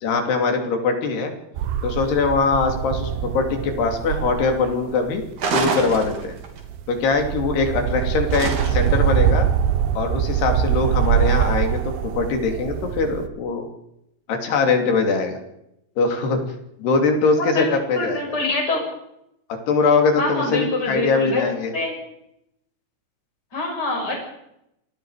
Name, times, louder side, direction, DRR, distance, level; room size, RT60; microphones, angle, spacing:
voice 1, 0.0-1.3 1.8-6.3 6.9-9.5 9.9-13.7 14.3-15.4 16.0-16.4 16.8-18.2 19.7-21.7, left 4 dB, 70° left, 4 dB, 4.9 m, -22 dB
sound 1, 1.5-13.3, right 9 dB, 80° right, 3.2 m, -24 dB
sound 2, 5.4-6.6 8.3-9.1, right 4 dB, 50° right, 4.0 m, -26 dB
voice 2, 17.4-17.7 17.9-18.8 20.2-21.4 21.7-22.0 23.5-24.1, left 2 dB, 20° left, 1 dB, 6.8 m, -25 dB
28.0 x 20.0 x 5.0 m, 0.81 s
omnidirectional pair, 5.0 m